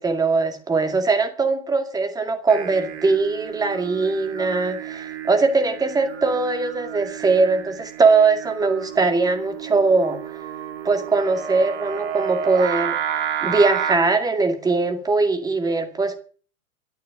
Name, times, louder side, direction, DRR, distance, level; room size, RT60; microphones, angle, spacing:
voice 1, 0.0-10.2 10.8-13.0 13.4-16.2, right 3 dB, 10° right, 2.2 m, -21 dB
Singing, 2.5-14.0, right 9 dB, 50° right, 2.8 m, -31 dB
12.5 x 11.0 x 9.3 m
figure-of-eight pair, 105°, 42 cm